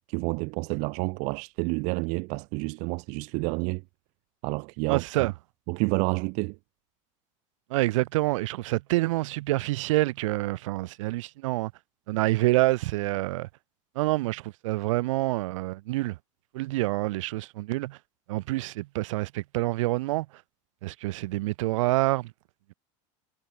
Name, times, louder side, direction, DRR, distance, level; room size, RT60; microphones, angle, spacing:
voice 1, 0.1-3.8 4.4-5.3 5.7-6.6, right 32 dB, 45° right, 1.9 m, -29 dB
voice 2, 4.9-5.3 7.7-11.7 12.1-13.5 13.9-16.2 16.5-18.0 18.3-20.3 20.8-22.3, right 19 dB, 75° right, 2.7 m, -27 dB
supercardioid pair, 170°, 16 cm